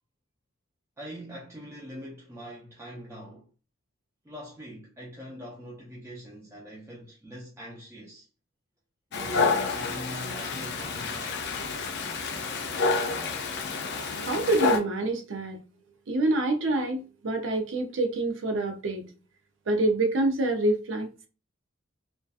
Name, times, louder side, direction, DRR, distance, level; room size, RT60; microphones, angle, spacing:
voice 1, 1.0-3.5 4.2-8.3 9.1-11.6, equal, 15° right, 0.4 m, -43 dB
Dog, 9.1-14.8, left 4 dB, 60° left, 0.4 m, -29 dB
voice 2, 14.2-15.6 16.1-19.0 19.7-21.1, right 2 dB, 70° right, 0.5 m, -26 dB
2.5 x 2.2 x 2.3 m
head